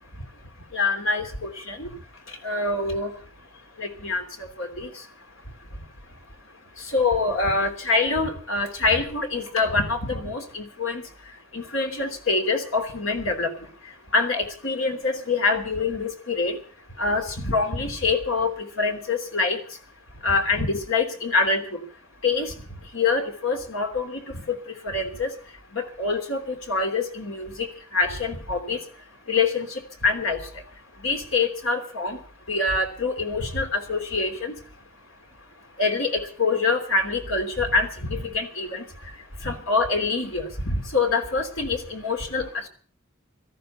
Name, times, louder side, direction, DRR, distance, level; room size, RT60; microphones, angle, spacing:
voice 1, 0.7-1.9 2.4-3.1 3.8-4.9 6.8-11.0 11.5-13.5 14.1-16.6 17.0-19.6 20.2-21.8 22.2-22.5 22.9-24.2 24.5-24.6 24.8-25.3 25.7-28.8 29.3-30.4 31.0-32.2 32.5-34.6 35.8-38.8 39.4-42.7, left 3 dB, 75° left, 5 dB, 3.1 m, -25 dB
18.0 x 13.5 x 5.7 m, 0.42 s
head